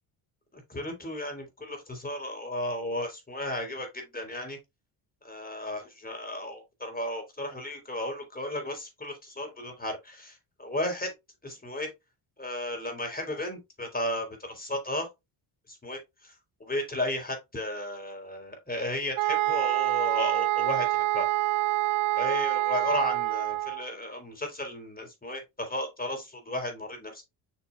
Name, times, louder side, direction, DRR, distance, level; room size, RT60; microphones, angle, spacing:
voice 1, 0.5-4.6 5.2-11.1 11.4-11.9 12.4-15.1 15.7-16.3 16.6-21.3 22.2-27.2, left 1 dB, 15° left, 3.8 m, -34 dB
sound 1, 19.2-23.9, right 16 dB, 80° right, 0.6 m, -26 dB
7.1 x 6.1 x 2.4 m
supercardioid pair, 75°, 50 cm